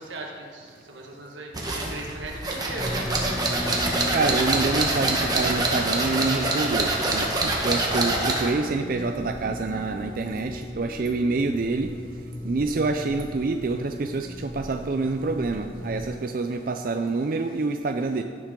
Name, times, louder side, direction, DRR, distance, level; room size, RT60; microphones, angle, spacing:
voice 1, 0.0-1.5 1.8-3.9, right 2 dB, 90° right, 0 dB, 1.7 m, -39 dB
sound 1, 1.5-8.6, right 2 dB, 20° right, 1.3 m, -25 dB
sound 2, 2.8-16.2, left 1 dB, 15° left, 0.4 m, -37 dB
voice 2, 4.1-11.9 12.5-18.2, right 3 dB, 50° right, 5 dB, 0.4 m, -27 dB
16.5 x 7.2 x 3.8 m, 2.1 s
head